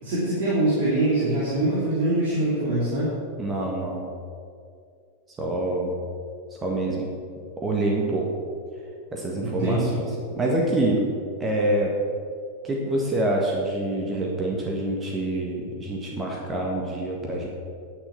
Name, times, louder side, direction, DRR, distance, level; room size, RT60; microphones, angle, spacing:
voice 1, 0.0-3.1 9.4-10.0, right 1 dB, 50° right, -7 dB, 2.7 m, -23 dB
voice 2, 3.4-4.1 5.4-5.9 6.6-7.1 7.6-8.3 9.1-10.0 10.3-11.1 11.4-11.9 12.6-17.5, right 1 dB, 20° right, -1 dB, 1.7 m, -26 dB
9.9 x 6.7 x 6.9 m, 2.3 s
figure-of-eight pair, 90°, 0 cm